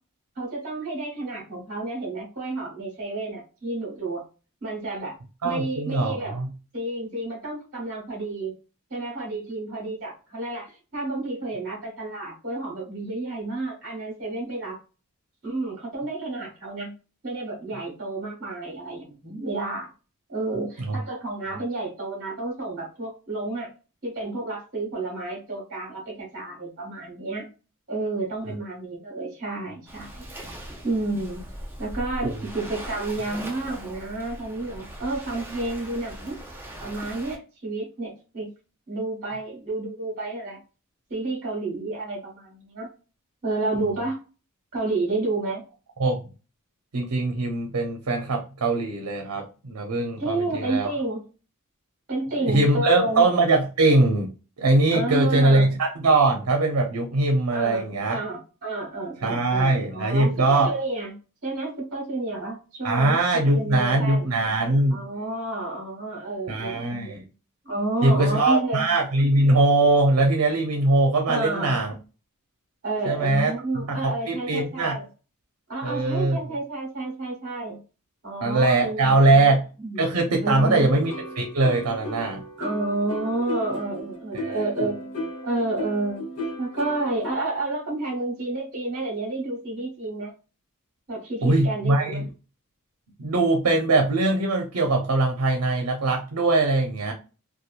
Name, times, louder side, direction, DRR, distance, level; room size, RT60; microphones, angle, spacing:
voice 1, 0.4-4.2 4.6-5.1 5.4-6.4 6.7-8.5 8.9-14.8 15.4-16.9 17.2-19.9 20.3-23.7 24.0-27.5 27.9-30.3 30.8-31.4 31.8-36.4 36.8-38.5 38.9-40.6 41.1-42.9 43.4-44.2 44.7-45.6 50.2-51.3 52.1-53.3 54.9-55.7 57.5-61.1 61.4-64.3 64.9-67.3 67.6-68.9 71.3-71.8 72.8-75.0 75.7-77.8 78.2-79.5 79.8-80.0 80.4-80.9 82.6-85.1 85.4-86.2 86.6-90.3 91.1-92.2, right 2 dB, 40° right, -3 dB, 1.1 m, -30 dB
voice 2, 5.4-6.5 20.9-21.0 32.3-32.4 46.0-46.2 46.9-50.9 52.3-54.3 54.6-58.2 59.2-60.7 62.8-65.0 66.5-67.2 68.0-71.9 73.0-75.0 75.8-76.4 78.4-79.6 80.0-82.4 84.3-84.5 91.4-92.3 93.2-97.1, right 2 dB, 80° right, 3 dB, 0.6 m, -22 dB
Waves surf, 29.9-37.4, equal, 10° right, 0.5 m, -39 dB
sound 1, 80.6-87.3, equal, 70° left, 1.1 m, -35 dB
2.8 x 2.2 x 2.4 m, 0.33 s
head